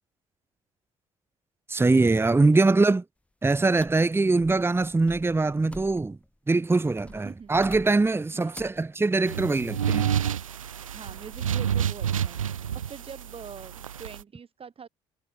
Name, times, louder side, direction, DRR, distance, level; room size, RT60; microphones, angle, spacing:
voice 1, 1.7-3.0 3.4-6.2 6.5-10.1, right 3 dB, 15° right, 1.4 m, -22 dB
sound 1, 3.8-6.3 7.0-8.2 8.5-8.9, left 1 dB, 5° left, 6.7 m, -47 dB
voice 2, 7.0-7.5 8.3-8.7 10.9-14.9, right 6 dB, 35° right, 7.1 m, -44 dB
sound 2, 9.3-14.2, right 9 dB, 80° right, 2.3 m, -29 dB
figure-of-eight pair, 55°, 17 cm